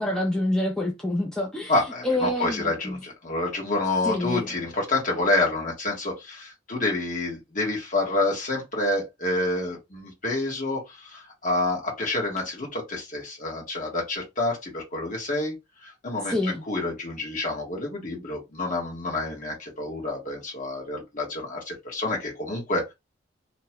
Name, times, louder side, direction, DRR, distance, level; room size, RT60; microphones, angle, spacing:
voice 1, 0.0-1.7 2.0-3.0 4.0-4.5 16.3-16.6, left 1 dB, 5° left, 0.5 m, -27 dB
voice 2, 1.7-15.5 15.8-22.9, left 2 dB, 45° left, 1.3 m, -28 dB
2.9 x 2.3 x 2.9 m
head